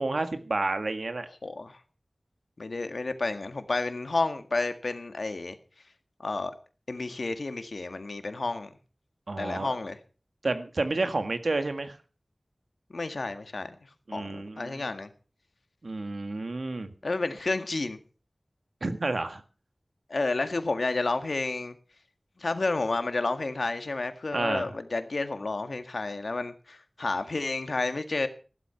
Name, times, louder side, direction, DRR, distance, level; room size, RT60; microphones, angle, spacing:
voice 1, 0.0-1.3 9.3-9.8 10.4-12.0 14.1-14.8 15.8-16.9 18.8-19.4 24.3-24.7, right 2 dB, 80° right, 9 dB, 1.7 m, -30 dB
voice 2, 1.4-1.8 2.6-5.6 6.2-6.5 6.9-8.7 9.4-10.0 12.9-13.8 14.1-15.1 17.0-18.0 20.1-21.8 22.4-28.3, left 3 dB, 85° left, 9 dB, 1.8 m, -30 dB
15.5 x 12.0 x 5.7 m, 0.37 s
wide cardioid pair, 50°, 0 cm